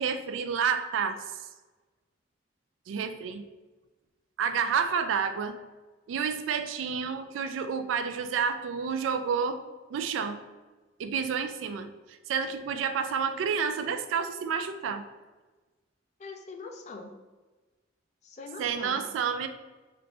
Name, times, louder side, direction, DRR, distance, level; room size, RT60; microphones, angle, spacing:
voice 1, 0.0-1.4 2.9-3.4 4.4-5.6 6.1-9.6 9.9-10.4 11.0-15.0 18.6-19.5, right 6 dB, 85° right, 10 dB, 0.3 m, -30 dB
voice 2, 16.2-17.1 18.2-19.0, left 3 dB, 35° left, 4 dB, 0.4 m, -42 dB
3.3 x 2.6 x 2.8 m, 1.2 s
head